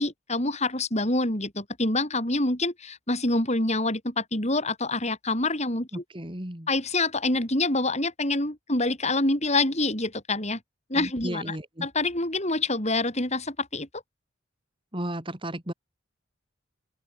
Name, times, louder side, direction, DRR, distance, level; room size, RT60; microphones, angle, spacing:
voice 1, 0.0-6.0 6.7-10.6 10.9-11.4 11.8-14.0, left 2 dB, 35° left, 7.0 m, -26 dB
voice 2, 5.9-6.7 10.9-11.9 14.9-15.7, right 1 dB, 25° right, 3.6 m, -34 dB
open air
head